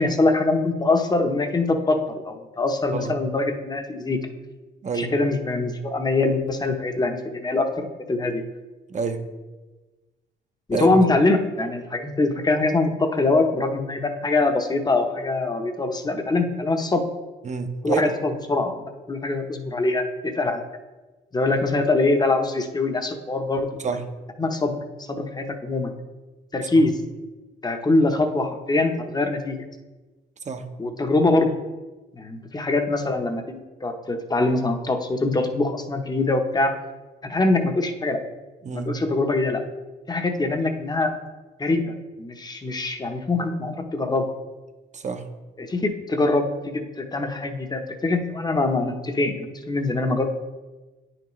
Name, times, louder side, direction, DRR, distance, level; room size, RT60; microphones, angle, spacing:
voice 1, 0.0-4.2 4.9-8.4 10.7-17.0 17.8-20.6 21.3-23.7 24.4-25.9 26.5-27.0 27.6-29.6 30.8-31.5 32.1-36.8 37.2-38.2 38.7-39.6 40.1-41.1 41.6-44.3 45.6-50.2, left 2 dB, 20° left, 5 dB, 0.9 m, -23 dB
voice 2, 8.9-9.2 10.7-10.9 17.4-18.1 23.8-24.0 30.5-30.6 38.6-38.9 44.9-45.2, right 5 dB, 35° right, 7 dB, 0.8 m, -27 dB
9.7 x 5.9 x 3.1 m, 1.2 s
cardioid pair, 90°, 20 cm